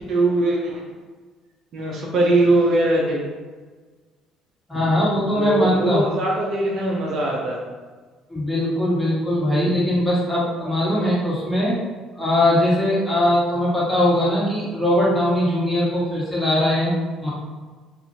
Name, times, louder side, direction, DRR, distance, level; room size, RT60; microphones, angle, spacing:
voice 1, 0.1-0.8 1.7-3.2 4.7-4.9 5.4-7.6 9.7-9.8 10.8-11.0, right 2 dB, 60° right, -2 dB, 0.5 m, -21 dB
voice 2, 4.7-6.0 8.3-11.7 12.2-16.9 17.2-17.3, left 1 dB, 5° left, -8 dB, 1.5 m, -20 dB
2.7 x 2.5 x 2.7 m, 1.4 s
hypercardioid pair, 65°, 0 cm